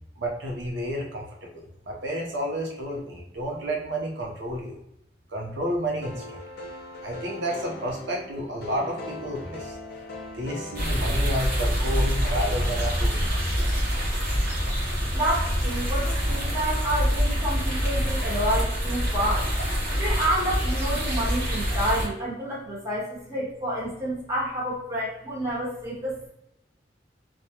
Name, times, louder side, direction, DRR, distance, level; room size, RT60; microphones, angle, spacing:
voice 1, 0.2-1.2 1.5-4.8 5.3-6.4 7.0-9.7 10.3-13.2, equal, 85° right, -1 dB, 0.6 m, -31 dB
sound 1, 6.0-11.9, left 2 dB, 60° left, 0.5 m, -40 dB
sound 2, 10.7-22.1, equal, 55° right, 0.9 m, -25 dB
voice 2, 15.1-19.5 19.9-26.3, right 1 dB, 15° right, -8 dB, 1.0 m, -29 dB
2.1 x 2.1 x 2.8 m, 0.79 s
head